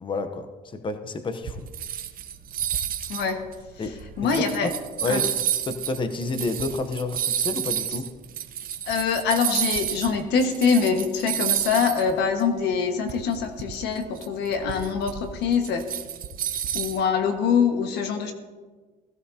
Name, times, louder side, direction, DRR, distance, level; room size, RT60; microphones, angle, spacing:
voice 1, 0.0-1.7 3.8-5.3 5.6-8.1, left 3 dB, 30° left, 8 dB, 0.8 m, -30 dB
sound 1, 1.4-10.1 10.4-12.1 12.4-12.5 13.1-17.0, right 10 dB, 55° right, 1.0 m, -30 dB
voice 2, 4.2-4.7 5.1-5.2 8.9-15.8 16.7-18.3, left 6 dB, 85° left, 5 dB, 1.6 m, -24 dB
16.5 x 15.5 x 2.8 m, 1.4 s
cardioid pair, 110°, 17 cm